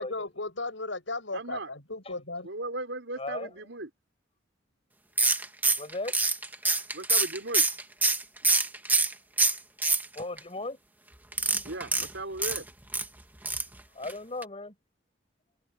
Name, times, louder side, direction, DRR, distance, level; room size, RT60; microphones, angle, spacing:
voice 1, 0.0-2.5, left 2 dB, 90° left, 7.5 m, -35 dB
voice 2, 1.3-1.7 2.4-3.9 6.9-7.6 11.7-12.6, right 2 dB, 85° right, 4.6 m, -36 dB
voice 3, 3.2-3.5 5.8-6.2 10.1-10.8 13.9-14.7, left 2 dB, 35° left, 6.1 m, -36 dB
sound 1, 5.2-9.1 9.4-10.4 11.3-13.1 13.4-13.8 14.0-14.1 14.4-14.5, right 3 dB, 10° right, 1.7 m, -25 dB
head